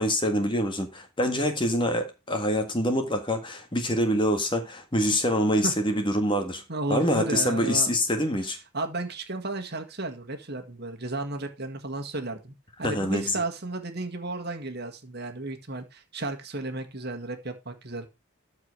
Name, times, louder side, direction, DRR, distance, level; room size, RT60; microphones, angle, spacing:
voice 1, 0.0-6.6 6.9-8.6 12.8-13.4, equal, 20° left, 1.7 m, -25 dB
voice 2, 6.7-8.0 8.7-12.5 12.8-18.1, right 2 dB, 50° right, 1.8 m, -33 dB
13.5 x 4.8 x 4.7 m
head